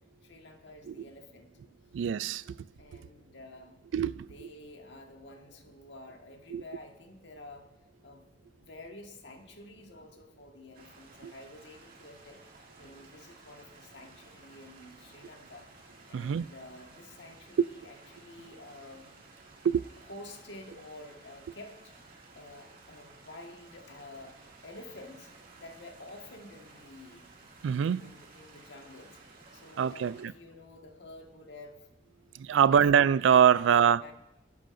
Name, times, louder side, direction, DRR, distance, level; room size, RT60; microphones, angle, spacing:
voice 1, 0.2-1.5 2.8-3.8 4.2-7.7 8.0-12.4 12.8-15.7 16.1-19.1 20.0-21.9 22.3-25.3 25.6-27.3 28.0-29.2 29.5-31.9 32.5-32.9 33.6-34.1, left 2 dB, 70° left, 1.6 m, -49 dB
voice 2, 1.9-2.6 3.9-4.5 6.5-6.6 11.2-11.3 16.1-16.5 17.6-17.7 19.6-19.8 27.6-28.1 29.8-30.3 32.3-34.0, right 8 dB, 85° right, 0.3 m, -24 dB
sound 1, 10.7-30.2, right 3 dB, 50° right, 2.4 m, -55 dB
23.0 x 10.5 x 2.6 m
head